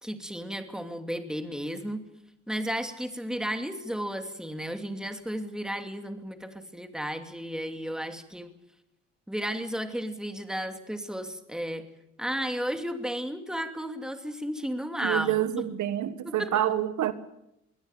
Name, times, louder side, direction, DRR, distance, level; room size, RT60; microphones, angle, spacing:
voice 1, 0.0-2.0 2.5-8.5 9.3-11.9 12.2-15.6 16.2-16.5, equal, ahead, 2.7 m, -33 dB
voice 2, 15.0-17.1, right 12 dB, 75° right, 1.5 m, -27 dB
22.5 x 18.0 x 9.2 m
cardioid pair, 90°, 30 cm